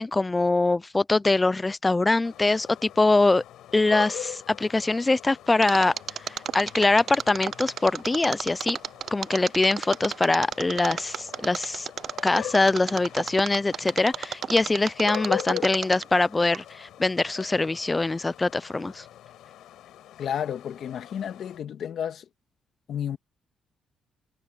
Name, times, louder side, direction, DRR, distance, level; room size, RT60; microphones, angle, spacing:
voice 1, 0.0-3.4 3.7-5.9 6.5-8.8 9.1-11.9 12.2-19.0, left 2 dB, 20° left, 0.4 m, -23 dB
sound 1, 2.2-21.6, left 12 dB, 80° left, 5.4 m, -42 dB
Mechanisms, 5.6-16.2 16.5-16.6, right 8 dB, 55° right, 0.5 m, -32 dB
voice 2, 20.2-22.3 22.9-23.2, left 9 dB, 65° left, 1.8 m, -31 dB
cardioid pair, 90°, 0 cm